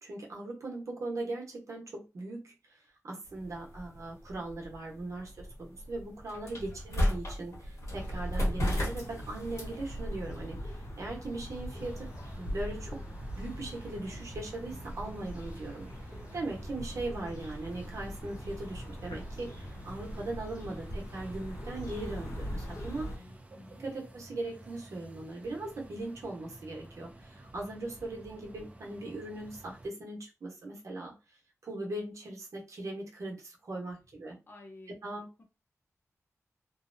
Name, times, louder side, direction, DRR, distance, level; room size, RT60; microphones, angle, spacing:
voice 1, 0.0-12.1 12.4-13.0 13.3-23.1 23.7-31.1 31.6-34.4 35.0-35.3, right 2 dB, 70° right, 0.9 m, -39 dB
sound 1, 3.3-12.3, left 1 dB, 65° left, 1.2 m, -36 dB
sound 2, 7.9-23.2, equal, 85° left, 0.7 m, -41 dB
sound 3, 11.7-29.9, right 1 dB, 25° right, 0.4 m, -51 dB
voice 2, 23.0-23.8 34.5-35.4, left 2 dB, 40° left, 0.7 m, -53 dB
2.7 x 2.1 x 2.6 m
wide cardioid pair, 135°, 5 cm